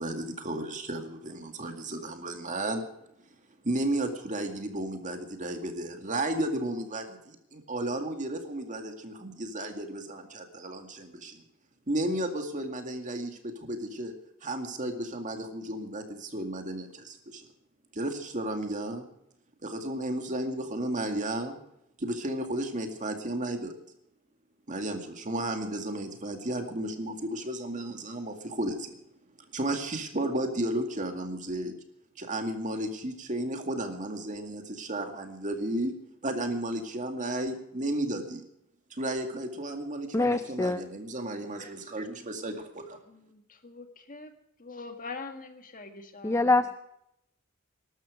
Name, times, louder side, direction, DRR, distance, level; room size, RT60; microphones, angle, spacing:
voice 1, 0.0-2.9 3.6-11.4 11.9-14.1 14.4-17.5 17.9-19.1 19.6-21.6 22.0-23.7 24.7-29.0 29.5-31.7 32.2-38.4 38.9-43.0, right 1 dB, 40° right, 5 dB, 2.2 m, -33 dB
voice 2, 40.1-40.8 46.2-46.7, left 2 dB, 15° left, 11 dB, 0.5 m, -24 dB
voice 3, 43.1-44.3 44.6-46.5, left 4 dB, 40° left, 6 dB, 1.8 m, -43 dB
20.0 x 12.5 x 5.0 m, 0.80 s
head